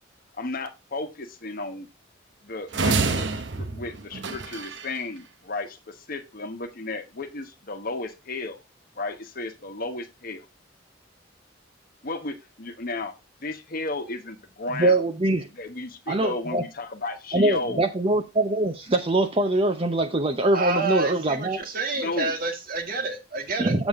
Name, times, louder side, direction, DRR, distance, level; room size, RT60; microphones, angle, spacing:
voice 1, 0.3-1.9 2.4-8.6 9.0-10.4 12.0-13.1 13.4-15.0 15.5-17.9 21.9-22.4, left 2 dB, 50° left, 1.2 m, -34 dB
sound 1, 2.7-5.0, right 3 dB, 65° right, 0.9 m, -27 dB
voice 2, 14.7-15.5 16.1-16.6 17.3-21.6 23.6-23.9, right 2 dB, 30° right, 0.7 m, -23 dB
voice 3, 20.5-23.7, right 3 dB, 50° right, 1.6 m, -29 dB
7.2 x 7.1 x 3.6 m
head